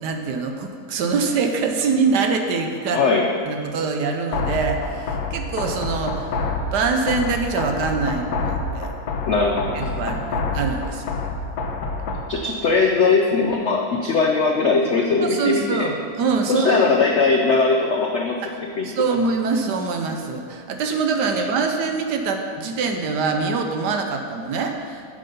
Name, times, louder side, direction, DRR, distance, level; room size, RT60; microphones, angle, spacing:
voice 1, 0.0-3.0 3.4-6.4 6.7-8.9 9.7-11.2 15.2-16.8 18.8-25.0, right 4 dB, 70° right, 5 dB, 1.3 m, -24 dB
voice 2, 2.9-3.3 9.3-9.9 12.3-15.9 16.4-18.9 21.3-21.4, left 4 dB, 70° left, 1 dB, 0.6 m, -20 dB
sound 1, 4.3-12.3, left 3 dB, 90° left, 1.6 m, -27 dB
9.1 x 6.8 x 5.4 m, 2.2 s
omnidirectional pair, 2.0 m